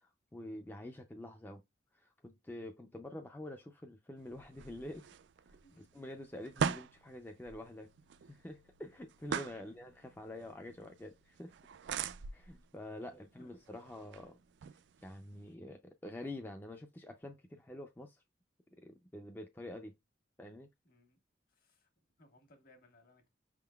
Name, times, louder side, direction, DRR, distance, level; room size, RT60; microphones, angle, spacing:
voice 1, 0.0-1.6 1.9-5.1 5.4-7.9 8.2-11.5 12.3-14.4 14.7-18.2 18.8-19.9 20.4-20.7, left 1 dB, 10° left, 0.4 m, -47 dB
sound 1, 4.2-15.5, right 7 dB, 80° right, 0.4 m, -43 dB
voice 2, 5.6-6.0 9.6-9.8 10.4-10.5 12.0-12.2 12.5-12.6 13.4-13.5 20.8-21.2 21.5-21.9 22.2-23.3, left 1 dB, 50° left, 1.3 m, -64 dB
5.7 x 3.7 x 2.2 m
head